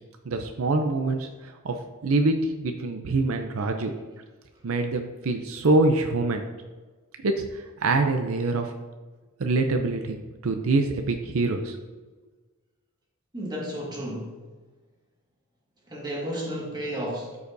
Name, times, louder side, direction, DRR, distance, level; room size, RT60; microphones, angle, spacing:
voice 1, 0.3-1.8 2.0-3.9 4.6-6.4 7.2-8.7 9.4-11.8, right 3 dB, 70° right, 5 dB, 0.5 m, -25 dB
voice 2, 13.3-14.4 15.9-17.4, equal, 20° right, -3 dB, 1.7 m, -32 dB
13.0 x 4.9 x 2.6 m, 1.3 s
head